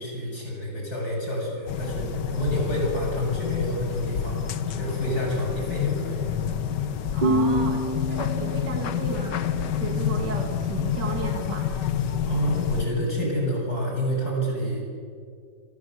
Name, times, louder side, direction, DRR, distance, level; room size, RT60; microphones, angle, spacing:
voice 1, 0.0-4.4 4.7-6.3 12.2-14.8, equal, 60° left, -1 dB, 8.4 m, -28 dB
sound 1, 1.7-12.9, left 8 dB, 85° left, 1.7 m, -28 dB
voice 2, 7.1-11.7, right 5 dB, 90° right, 2 dB, 2.9 m, -34 dB
sound 2, 7.2-10.6, equal, 25° right, 3.2 m, -28 dB
27.0 x 26.5 x 8.0 m, 2.2 s
omnidirectional pair, 1.8 m